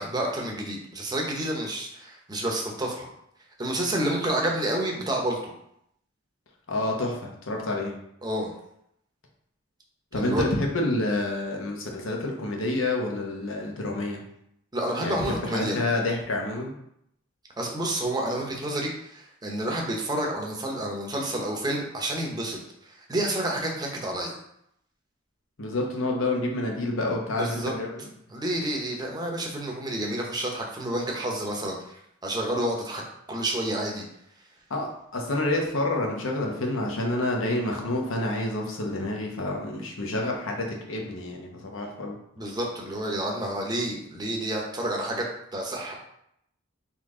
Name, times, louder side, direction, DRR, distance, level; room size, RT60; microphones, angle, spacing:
voice 1, 0.0-3.1 3.6-5.4 8.2-8.5 10.1-10.5 14.7-15.8 17.6-24.4 27.3-27.7 28.3-31.9 32.2-33.0 33.3-34.0 42.4-45.3 45.5-45.9, right 1 dB, 20° right, -1 dB, 0.8 m, -29 dB
voice 2, 6.7-7.9 10.1-14.2 15.0-16.7 25.6-28.1 34.7-34.9 35.1-42.2, left 2 dB, 75° left, 0 dB, 1.0 m, -28 dB
4.1 x 3.1 x 3.7 m, 0.75 s
head